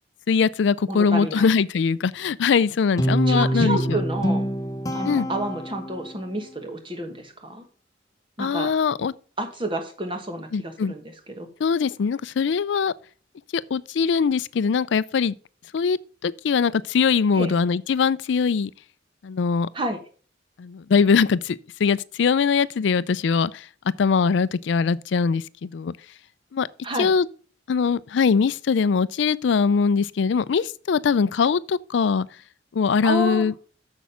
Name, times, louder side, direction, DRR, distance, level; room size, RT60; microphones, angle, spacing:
voice 1, 0.3-4.0 5.0-5.3 8.4-9.1 10.5-10.9 11.6-12.9 13.5-15.3 15.7-18.7 19.2-19.7 20.6-23.7 24.0-25.9 26.5-26.7 27.0-27.3 27.7-32.3 32.7-33.5, left 5 dB, 65° left, 0.4 m, -22 dB
voice 2, 0.9-1.5 3.3-4.4 4.9-7.6 8.4-8.7 9.4-11.5 17.3-17.5 19.7-20.0 26.8-27.1 33.0-33.5, right 1 dB, 25° right, 1.3 m, -30 dB
Guitar, 3.0-6.3, right 1 dB, 20° left, 0.8 m, -25 dB
7.0 x 6.4 x 5.6 m
head